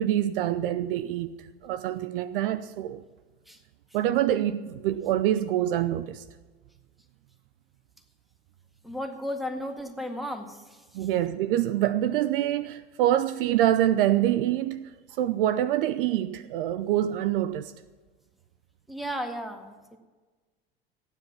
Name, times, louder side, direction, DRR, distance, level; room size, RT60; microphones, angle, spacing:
voice 1, 0.0-3.0 3.9-6.2 10.9-17.7, right 12 dB, 60° right, 0.6 m, -26 dB
voice 2, 8.8-11.1 18.9-20.0, equal, ahead, 1.8 m, -35 dB
15.5 x 9.8 x 6.0 m
figure-of-eight pair, 70°, 31 cm